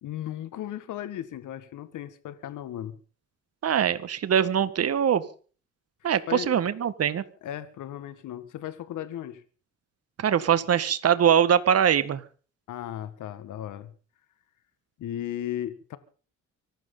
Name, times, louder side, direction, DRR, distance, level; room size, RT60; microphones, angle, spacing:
voice 1, 0.0-3.0 6.3-6.5 7.4-9.4 12.7-13.9 15.0-16.0, left 11 dB, 80° left, 1.8 m, -36 dB
voice 2, 3.6-5.2 6.0-7.2 10.2-12.2, right 8 dB, 55° right, 1.8 m, -22 dB
24.5 x 12.5 x 4.0 m
cardioid pair, 90°, 30 cm